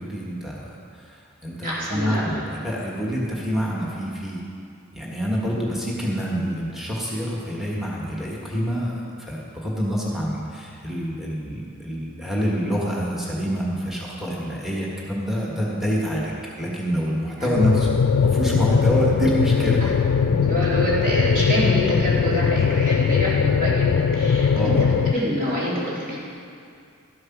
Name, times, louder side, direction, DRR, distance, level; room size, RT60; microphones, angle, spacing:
voice 1, 0.0-4.4 4.9-17.9 18.2-19.8 24.5-24.8, equal, ahead, -5 dB, 1.5 m, -26 dB
voice 2, 1.6-2.4 17.4-17.5 19.8-19.9 20.4-24.5 24.8-26.2, equal, 45° right, -7 dB, 3.4 m, -26 dB
sound 1, 17.6-25.1, left 6 dB, 80° left, 0.4 m, -20 dB
13.0 x 7.9 x 6.0 m, 2.4 s
head